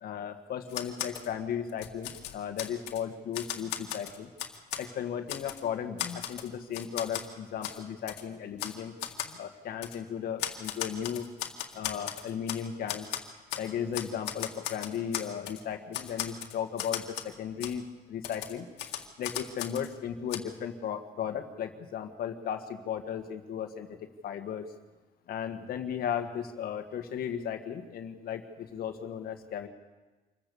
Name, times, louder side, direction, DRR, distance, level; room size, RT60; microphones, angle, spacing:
voice 1, 0.0-4.3 4.8-8.9 9.2-11.3 11.7-13.1 13.5-18.7 19.2-23.9 24.2-24.6 25.3-29.7, left 8 dB, 60° left, 6 dB, 1.7 m, -35 dB
Typewriter, 0.7-1.3 1.7-3.0 3.3-4.9 5.3-5.6 6.0-7.3 7.6-7.8 8.1-8.2 8.6-8.8 9.0-9.3 9.8-10.0 10.4-12.6 12.9-13.7 13.9-15.6 15.9-17.3 17.6-17.7 18.2-19.9 20.3-20.4, left 11 dB, 85° left, 1.9 m, -37 dB
26.0 x 15.0 x 7.0 m, 1.2 s
cardioid pair, 110°, 17 cm